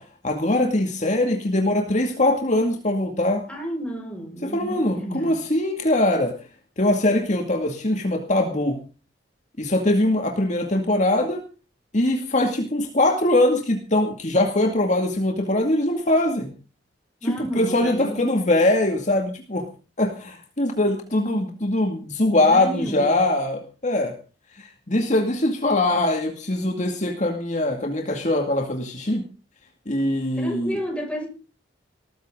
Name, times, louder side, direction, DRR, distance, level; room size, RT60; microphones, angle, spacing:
voice 1, 0.0-3.4 4.4-6.4 6.8-8.8 9.6-11.4 11.9-16.5 17.2-19.7 20.0-24.1 24.5-29.2 29.9-30.8, left 1 dB, 40° left, 2.3 m, -22 dB
voice 2, 3.5-5.4 17.2-18.4 21.1-21.5 22.3-23.3 30.4-31.3, equal, 5° left, 6.1 m, -32 dB
19.5 x 14.5 x 3.9 m
head